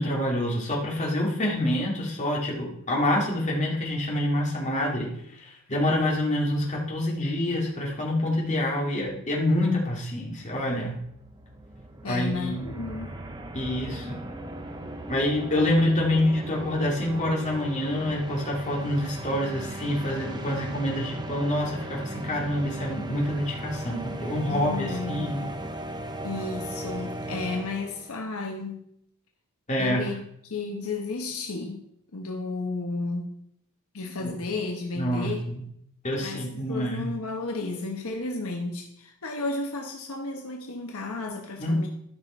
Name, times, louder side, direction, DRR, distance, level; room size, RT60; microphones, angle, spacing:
voice 1, 0.0-5.1 5.4-11.0 12.0-12.7 13.5-14.2 15.1-25.5 29.7-30.0 34.2-34.3 35.0-35.6 36.0-37.1 41.6-41.9, left 1 dB, 35° left, -3 dB, 2.6 m, -27 dB
sound 1, 10.4-10.5 10.7-28.1, right 1 dB, 20° right, 0.8 m, -37 dB
voice 2, 12.0-13.1 24.5-25.4 26.2-28.8 29.8-31.8 32.1-33.4 33.9-35.5 36.2-41.9, left 3 dB, 75° left, 2 dB, 1.1 m, -33 dB
12.5 x 5.8 x 4.4 m, 0.74 s
head